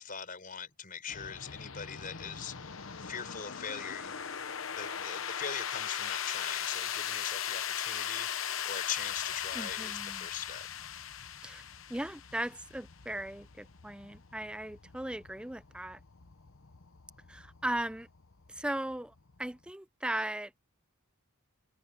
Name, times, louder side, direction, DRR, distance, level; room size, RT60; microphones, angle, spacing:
voice 1, 0.0-2.7 3.0-4.2 4.8-10.8 11.3-11.5, left 7 dB, 40° left, 5.6 m, -41 dB
sound 1, 1.1-19.7, left 9 dB, 65° left, 1.0 m, -39 dB
voice 2, 9.5-10.3 11.4-11.6 11.9-16.0 17.3-18.1 18.5-20.5, right 1 dB, 5° right, 0.5 m, -37 dB
head